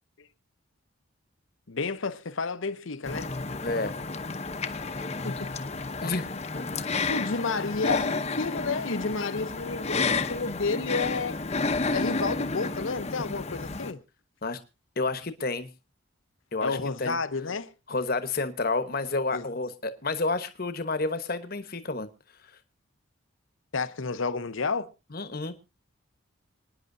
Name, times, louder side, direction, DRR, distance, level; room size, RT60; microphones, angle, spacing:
voice 1, 1.7-3.3 5.2-5.5 7.1-11.3 11.9-14.0 16.6-17.7 19.3-19.5 23.7-24.9, left 4 dB, 75° left, 0.8 m, -31 dB
sound 1, 3.1-13.9, left 3 dB, 30° left, 0.8 m, -31 dB
voice 2, 3.6-3.9 6.0-6.3 6.5-6.9 14.4-14.6 15.0-15.7 16.5-17.2 17.9-22.1 25.1-25.5, left 3 dB, 45° left, 1.1 m, -30 dB
27.0 x 9.8 x 2.7 m
head